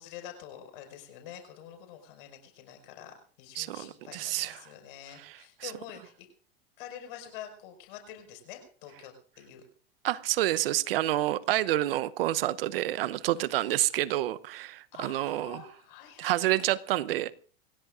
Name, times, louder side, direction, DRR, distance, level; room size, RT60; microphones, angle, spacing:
voice 1, 0.0-6.3 6.8-9.6 14.9-16.7, left 9 dB, 60° left, 5 dB, 5.4 m, -47 dB
voice 2, 3.6-4.6 10.0-15.6 16.2-17.3, right 14 dB, 65° right, 17 dB, 0.9 m, -28 dB
26.0 x 16.0 x 2.6 m, 0.43 s
hypercardioid pair, 100°, 30 cm